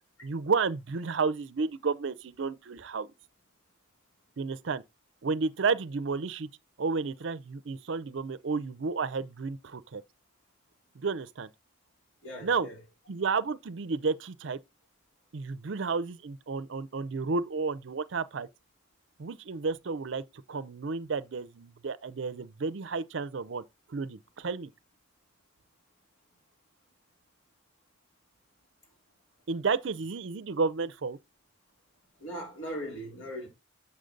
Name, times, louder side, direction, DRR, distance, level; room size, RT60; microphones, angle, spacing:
voice 1, 0.2-3.1 4.4-4.8 5.2-6.5 6.8-10.0 11.0-11.5 12.4-12.7 13.1-14.6 15.3-18.5 19.2-20.2 20.5-23.6 23.9-24.7 29.5-31.2, right 4 dB, 65° right, 0.5 m, -31 dB
voice 2, 12.2-12.8 32.2-33.5, equal, 85° left, 3.6 m, -39 dB
7.1 x 6.5 x 3.8 m
head